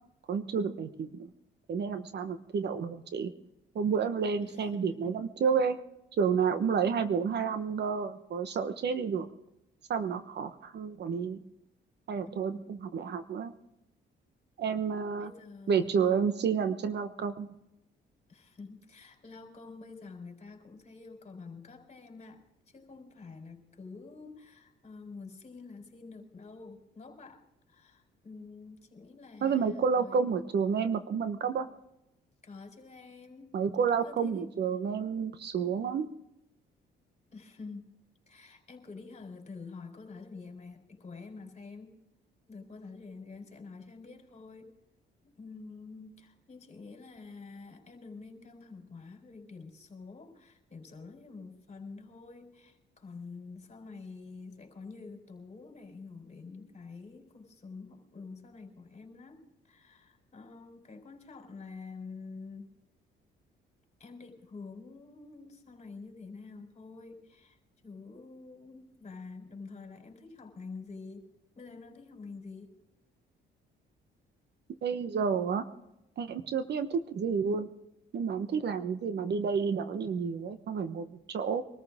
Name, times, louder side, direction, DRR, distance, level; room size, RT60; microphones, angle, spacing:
voice 1, 0.3-1.3 1.7-3.3 3.7-5.8 6.2-9.3 9.9-11.4 12.1-13.5 14.6-15.3 15.7-17.5 29.4-31.7 33.5-36.1 74.8-75.6 76.2-77.7 78.1-81.6, right 6 dB, 60° right, 10 dB, 1.1 m, -30 dB
voice 2, 12.3-12.6 15.2-16.0 18.3-27.4 27.7-30.3 32.4-33.6 34.0-34.5 37.3-37.9 38.3-42.0 42.5-44.7 45.2-62.7 64.0-71.3 71.5-72.7, left 4 dB, 35° left, 4 dB, 4.3 m, -47 dB
23.5 x 14.0 x 3.6 m, 0.88 s
cardioid pair, 90°, 20 cm